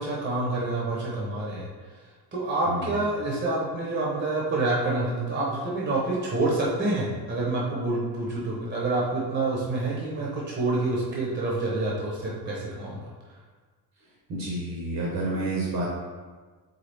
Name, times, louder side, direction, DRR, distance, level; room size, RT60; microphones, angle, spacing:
voice 1, 0.0-1.7 2.3-13.1, right 2 dB, 25° right, -5 dB, 0.8 m, -27 dB
voice 2, 14.3-15.9, right 2 dB, 55° right, -4 dB, 1.0 m, -29 dB
4.0 x 3.8 x 3.4 m, 1.4 s
cardioid pair, 145°, 44 cm